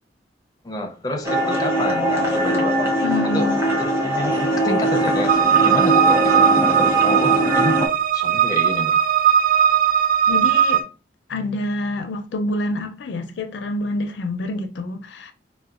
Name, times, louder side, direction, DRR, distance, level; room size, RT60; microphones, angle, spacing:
voice 1, 0.6-2.9 3.2-3.5 3.8-9.0, left 1 dB, 20° left, 0.5 m, -29 dB
sound 1, 1.2-7.9, right 1 dB, 15° right, 0.7 m, -21 dB
voice 2, 3.0-3.6 10.3-10.9 11.3-15.3, left 2 dB, 85° left, 0.4 m, -27 dB
sound 2, 5.3-10.8, right 8 dB, 55° right, 0.4 m, -18 dB
4.1 x 2.1 x 2.4 m
head